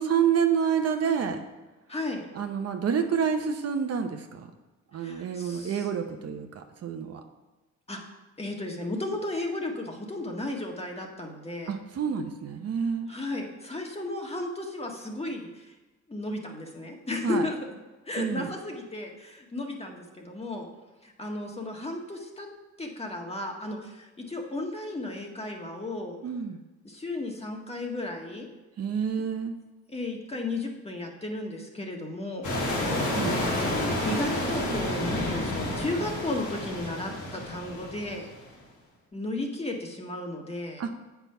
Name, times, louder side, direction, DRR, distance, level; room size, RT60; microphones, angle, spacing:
voice 1, 0.0-1.4 2.3-4.5 4.9-7.2 11.7-13.1 17.2-17.5 18.2-18.5 26.2-26.6 28.8-29.5 33.1-33.4 40.8-40.9, right 7 dB, 55° right, 5 dB, 0.9 m, -28 dB
voice 2, 1.9-2.2 4.9-5.9 7.9-8.0 8.4-11.7 13.1-15.7 16.1-17.6 18.1-20.7 21.0-22.5 22.8-26.1 26.8-28.5 29.9-32.5 34.0-38.3 39.1-40.8, left 2 dB, 20° left, 1 dB, 1.6 m, -34 dB
sound 1, 32.4-38.4, left 1 dB, 75° left, 2.5 m, -30 dB
8.1 x 5.9 x 5.6 m, 1.2 s
cardioid pair, 90°, 30 cm